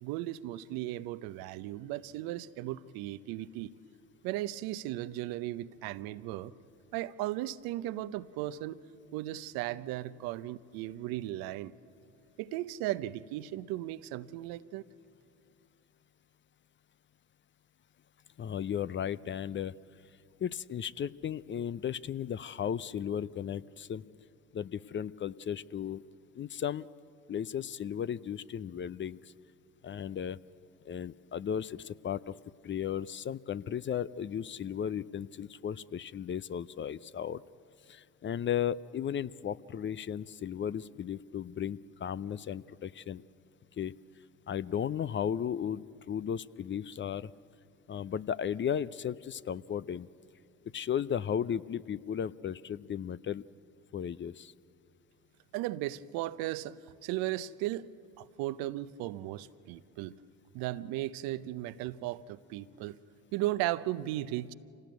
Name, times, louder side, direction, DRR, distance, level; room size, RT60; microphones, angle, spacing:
voice 1, 0.0-3.7 4.2-6.5 6.9-8.8 9.1-11.7 12.4-14.8 55.5-56.8 57.0-57.9 58.2-60.2 60.5-63.0 63.3-64.5, right 15 dB, 70° right, 15 dB, 0.8 m, -36 dB
voice 2, 18.4-19.7 20.4-24.0 24.5-26.0 26.3-26.9 27.3-29.3 29.8-30.4 30.9-32.3 32.6-37.4 37.9-43.2 43.8-43.9 44.5-47.3 47.9-50.1 50.7-53.4 53.9-54.5, left 9 dB, 30° left, 18 dB, 0.5 m, -35 dB
26.0 x 18.0 x 9.3 m, 2.4 s
hypercardioid pair, 65°, 36 cm